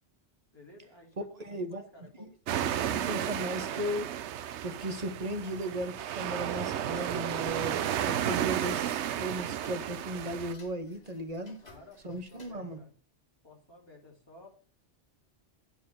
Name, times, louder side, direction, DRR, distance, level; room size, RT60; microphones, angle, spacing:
voice 1, 0.5-2.3 2.6-3.9 11.6-12.9 13.4-14.5, left 2 dB, 20° left, 2.8 m, -55 dB
voice 2, 1.2-1.9 2.2-2.3 2.9-4.1 4.6-11.6 12.0-12.8, right 1 dB, 40° right, 1.1 m, -36 dB
sound 1, 2.5-10.5, right 10 dB, 80° right, 0.9 m, -33 dB
Tick-tock, 6.5-12.5, left 2 dB, 40° left, 2.6 m, -58 dB
9.3 x 4.6 x 6.7 m
omnidirectional pair, 1.2 m